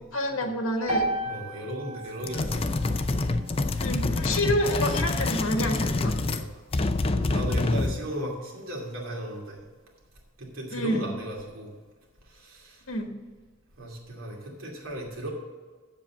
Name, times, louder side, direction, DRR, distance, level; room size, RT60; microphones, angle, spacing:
voice 1, 0.1-1.1 3.8-6.2 10.7-11.0 12.9-13.1, left 1 dB, 80° left, 4 dB, 1.5 m, -28 dB
sound 1, 0.9-5.0, right 1 dB, 40° right, 2.8 m, -35 dB
voice 2, 1.2-2.8 6.2-6.6 7.1-9.6 10.4-11.7 12.2-12.9 13.8-15.3, right 1 dB, 85° right, -1 dB, 2.6 m, -36 dB
sound 2, 2.2-6.5 6.7-8.0, left 2 dB, 25° left, 0.5 m, -26 dB
7.6 x 7.3 x 7.3 m, 1.4 s
head